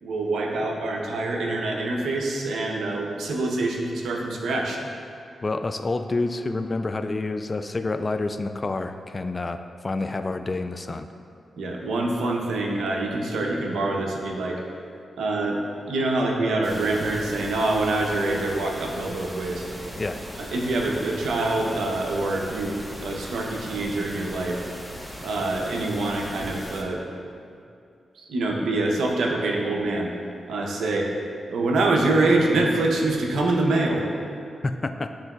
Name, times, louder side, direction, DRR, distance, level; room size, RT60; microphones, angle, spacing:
voice 1, 0.0-4.8 11.6-14.6 15.2-19.6 20.4-24.6 25.2-27.0 28.1-30.1 30.5-31.1 31.5-34.1, right 2 dB, 85° right, 0 dB, 0.8 m, -25 dB
voice 2, 5.4-11.1 20.0-20.2 34.6-35.1, left 3 dB, 40° left, 9 dB, 0.3 m, -28 dB
sound 1, 16.6-26.8, equal, ahead, 1.0 m, -39 dB
11.5 x 3.9 x 2.3 m, 2.5 s
cardioid pair, 55°, 0 cm